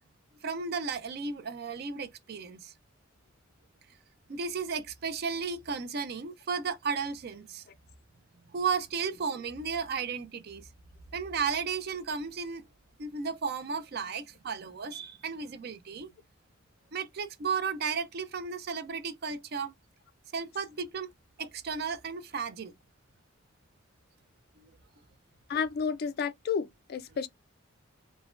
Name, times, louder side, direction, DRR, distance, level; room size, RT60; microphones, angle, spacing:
voice 1, 0.4-2.7 4.3-7.6 8.5-10.7 11.1-12.6 13.0-16.1 16.9-19.7 20.3-21.1 21.4-22.7 24.6-24.7, right 5 dB, 50° right, 0.4 m, -34 dB
voice 2, 25.5-27.3, left 6 dB, 50° left, 0.3 m, -31 dB
3.1 x 2.2 x 2.4 m
head